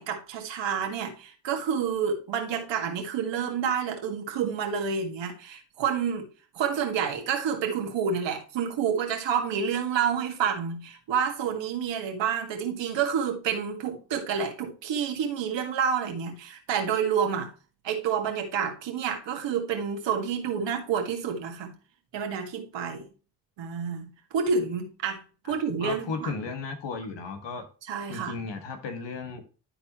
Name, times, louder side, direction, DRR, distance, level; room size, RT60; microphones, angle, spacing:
voice 1, 0.0-6.3 6.5-17.5 17.8-21.7 22.1-23.1 23.6-26.3 27.9-28.4, right 7 dB, 80° right, 1.9 m, -29 dB
voice 2, 25.8-27.6 28.1-29.4, left 4 dB, 75° left, 1.7 m, -35 dB
12.0 x 4.2 x 3.0 m
cardioid pair, 65°, 43 cm